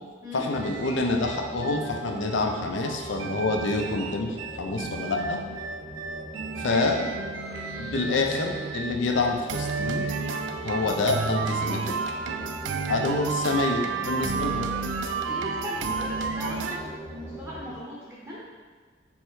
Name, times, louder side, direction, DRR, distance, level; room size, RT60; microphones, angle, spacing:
voice 1, 0.3-5.4 6.6-7.0 7.8-10.1 10.6-12.0 12.9-14.7, left 3 dB, 80° left, 3 dB, 0.5 m, -27 dB
sound 1, 0.5-17.8, right 1 dB, 30° left, 1.0 m, -41 dB
sound 2, 0.5-16.8, right 5 dB, 75° right, 0.3 m, -32 dB
voice 2, 6.6-7.1 12.6-12.8 14.3-18.5, equal, 10° right, -7 dB, 0.7 m, -38 dB
3.5 x 3.2 x 4.7 m, 1.5 s
head